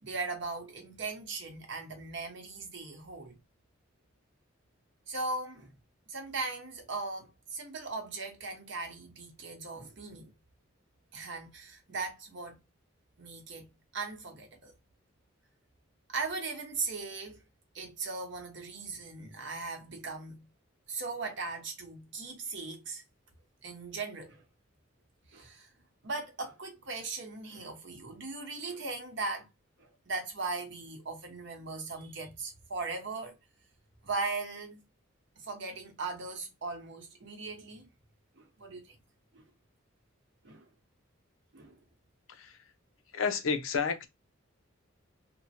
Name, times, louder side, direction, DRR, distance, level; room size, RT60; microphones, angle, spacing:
voice 1, 0.0-3.4 5.1-5.7 6.1-10.3 11.1-12.6 13.2-13.7 13.9-14.7 16.1-17.4 17.7-20.5 20.9-23.0 23.6-24.4 25.3-25.7 26.0-29.5 29.8-33.3 34.0-34.8 35.4-37.9 38.4-38.9 39.3-39.4 40.4-40.7 41.5-41.8, right 3 dB, 60° right, 0.9 m, -38 dB
voice 2, 42.3-42.6 43.1-44.1, left 5 dB, 80° left, 0.5 m, -31 dB
3.0 x 2.1 x 2.7 m
head